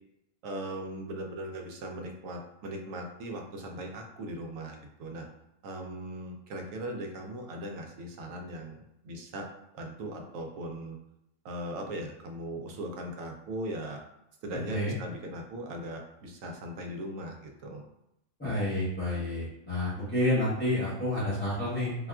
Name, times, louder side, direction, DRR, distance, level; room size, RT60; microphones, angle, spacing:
voice 1, 0.4-5.3 5.6-9.5 9.7-11.0 11.4-14.0 14.4-17.8, right 1 dB, 85° right, 2 dB, 1.0 m, -39 dB
voice 2, 18.4-22.0, left 1 dB, 10° left, -11 dB, 0.7 m, -29 dB
3.4 x 2.3 x 2.3 m, 0.83 s
omnidirectional pair, 1.4 m